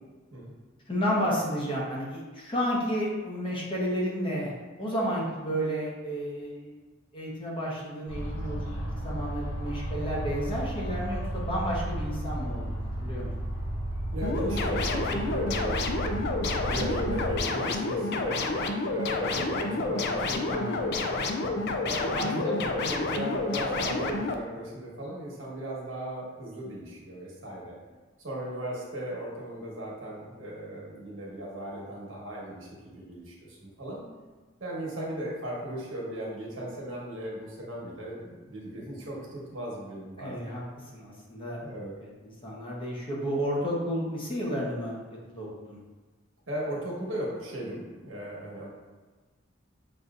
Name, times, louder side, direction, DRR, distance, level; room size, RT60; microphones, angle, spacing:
voice 1, 0.9-4.5 4.8-6.7 7.1-13.3 20.5-20.9 21.5-21.7 22.1-22.6 40.2-40.6 40.9-41.6 42.0-45.0 45.3-45.8, equal, 25° left, -5 dB, 0.9 m, -32 dB
sound 1, 8.1-17.4, right 1 dB, 85° left, 1.4 m, -33 dB
voice 2, 14.1-18.4 18.9-20.9 21.8-27.7 28.2-34.0 34.6-40.5 41.6-41.9 46.5-48.7, right 1 dB, 75° right, -4 dB, 1.2 m, -37 dB
sound 2, 14.2-24.3, left 3 dB, 55° left, 0.3 m, -29 dB
6.1 x 2.6 x 2.4 m, 1.3 s
head